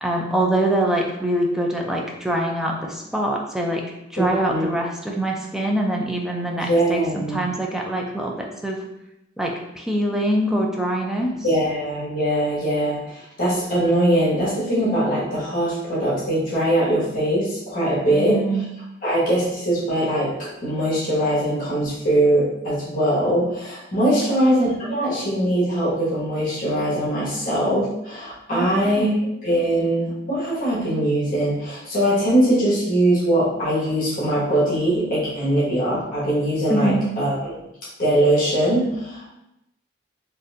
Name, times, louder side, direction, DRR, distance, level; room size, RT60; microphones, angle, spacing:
voice 1, 0.0-3.8 4.1-8.8 9.4-11.3 18.1-18.6 28.5-29.1 36.7-37.1, right 1 dB, ahead, -1 dB, 0.4 m, -24 dB
voice 2, 4.2-4.7 6.6-7.4 11.4-18.4 19.0-29.1 29.4-37.6 38.0-39.3, right 1 dB, 45° left, -9 dB, 1.4 m, -21 dB
4.1 x 2.6 x 2.5 m, 0.86 s
head